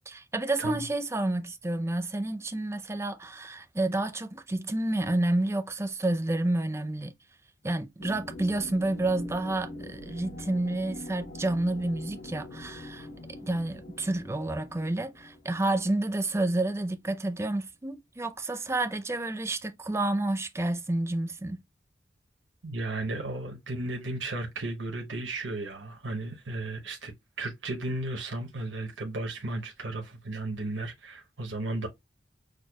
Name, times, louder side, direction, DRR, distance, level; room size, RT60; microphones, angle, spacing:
voice 1, 0.0-7.1 7.6-13.1 13.4-21.6, right 2 dB, 15° right, 0.5 m, -29 dB
sound 1, 8.0-16.5, left 1 dB, 75° left, 0.9 m, -43 dB
voice 2, 22.6-31.9, right 2 dB, 90° right, 0.9 m, -34 dB
6.2 x 2.2 x 2.2 m
head